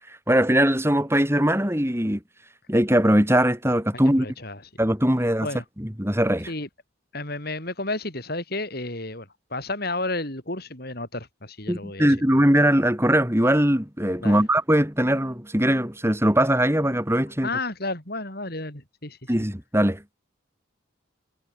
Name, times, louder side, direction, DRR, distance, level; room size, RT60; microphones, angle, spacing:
voice 1, 0.1-2.2 2.7-4.3 4.8-5.5 5.8-6.5 11.7-17.5 19.3-20.1, right 1 dB, 10° right, 3.7 m, -21 dB
voice 2, 4.2-4.6 5.4-5.6 6.5-6.7 7.1-12.1 14.2-14.4 17.4-19.3, left 2 dB, 50° left, 6.3 m, -32 dB
head